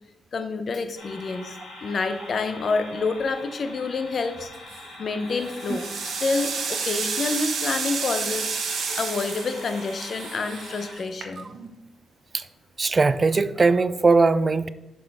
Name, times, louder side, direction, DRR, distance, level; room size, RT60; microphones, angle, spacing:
voice 1, 0.3-4.5 5.0-5.8 6.2-11.5, left 4 dB, 55° left, 0.8 m, -28 dB
sound 1, 0.9-10.9, left 2 dB, 80° left, 2.5 m, -43 dB
sound 2, 4.5-4.9 5.4-11.7, right 5 dB, 70° right, 1.0 m, -31 dB
voice 2, 12.8-14.7, right 4 dB, 40° right, 0.4 m, -20 dB
7.0 x 5.5 x 3.6 m
hypercardioid pair, 40°, 0 cm